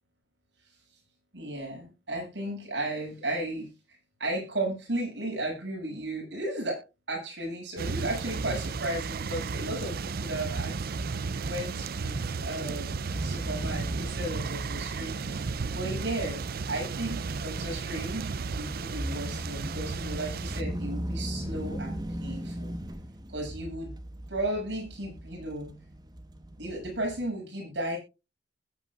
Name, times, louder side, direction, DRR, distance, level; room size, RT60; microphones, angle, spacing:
voice 1, 1.3-6.8 7.1-10.7 11.4-22.7 23.3-23.9 24.3-25.7 26.6-28.0, right 1 dB, 80° right, 0 dB, 7.5 m, -35 dB
sound 1, 7.8-20.6, right 4 dB, 55° right, 0.5 m, -34 dB
sound 2, 13.1-27.3, equal, 25° right, 1.3 m, -39 dB
20.5 x 8.9 x 2.5 m, 0.28 s
head